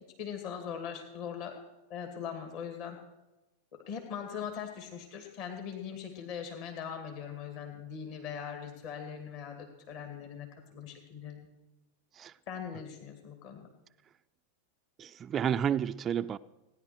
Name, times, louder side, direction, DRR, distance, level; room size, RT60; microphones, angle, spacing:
voice 1, 0.2-1.5 1.9-3.0 3.7-11.5 12.5-13.7, left 7 dB, 45° left, 2.4 m, -41 dB
voice 2, 15.0-16.4, right 8 dB, 25° right, 0.4 m, -30 dB
18.0 x 10.5 x 6.2 m
figure-of-eight pair, 90°, 0 cm